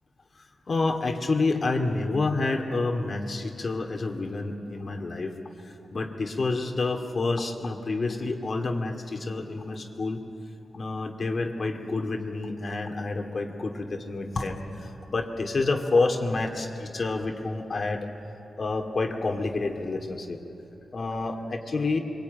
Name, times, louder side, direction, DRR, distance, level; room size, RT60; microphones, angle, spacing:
voice 1, 0.7-5.3 5.9-10.2 10.7-18.1 18.6-20.4 20.9-22.0, left 3 dB, 50° left, 3 dB, 2.3 m, -28 dB
24.0 x 22.5 x 9.4 m, 3.0 s
cardioid pair, 90°, 0 cm